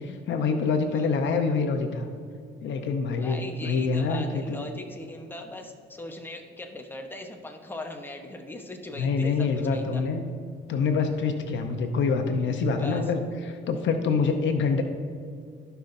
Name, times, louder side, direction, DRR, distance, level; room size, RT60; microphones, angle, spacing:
voice 1, 0.0-2.1 2.6-4.7 9.0-10.3 10.7-13.2 13.5-14.8, left 4 dB, 70° left, 6 dB, 0.8 m, -26 dB
voice 2, 3.1-10.0 12.8-13.1, left 1 dB, 10° left, 3 dB, 1.0 m, -39 dB
16.0 x 5.7 x 2.7 m, 2.3 s
cardioid pair, 90°, 20 cm